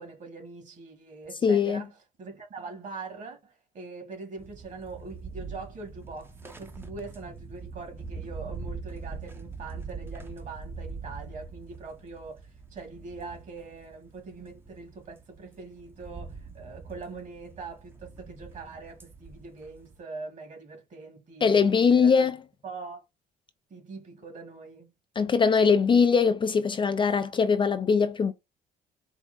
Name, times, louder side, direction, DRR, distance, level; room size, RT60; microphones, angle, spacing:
voice 1, 0.0-22.3 22.6-23.0 23.7-24.9, right 4 dB, 45° right, 2.1 m, -42 dB
voice 2, 1.4-1.8 21.4-22.4 25.2-28.3, left 5 dB, 30° left, 0.4 m, -21 dB
sound 1, 4.4-20.0, right 4 dB, 15° right, 0.7 m, -43 dB
4.4 x 2.1 x 3.8 m
cardioid pair, 110°, 17 cm